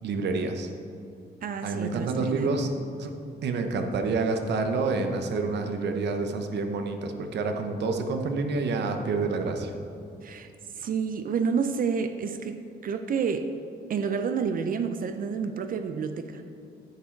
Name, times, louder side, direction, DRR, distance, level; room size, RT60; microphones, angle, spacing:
voice 1, 0.0-0.7 1.6-2.7 3.0-3.1 3.4-9.7, right 3 dB, 75° right, 6 dB, 0.9 m, -28 dB
voice 2, 1.4-2.5 10.2-10.5 10.8-13.5 13.9-16.4, right 6 dB, 50° right, 8 dB, 0.5 m, -29 dB
9.9 x 6.3 x 4.5 m, 2.5 s
cardioid pair, 135°, 18 cm